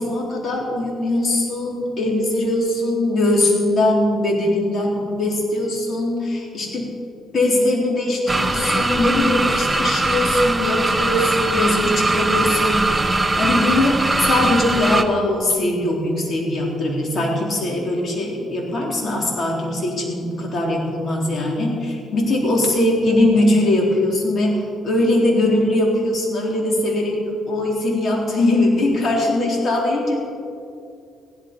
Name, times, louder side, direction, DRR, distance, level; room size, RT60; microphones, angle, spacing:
voice 1, 0.0-6.9 7.3-30.2, left 1 dB, 45° left, -1 dB, 3.8 m, -21 dB
sound 1, 8.3-15.0, right 2 dB, 15° right, 0.9 m, -20 dB
16.0 x 11.5 x 5.4 m, 2.4 s
cardioid pair, 90°, 0 cm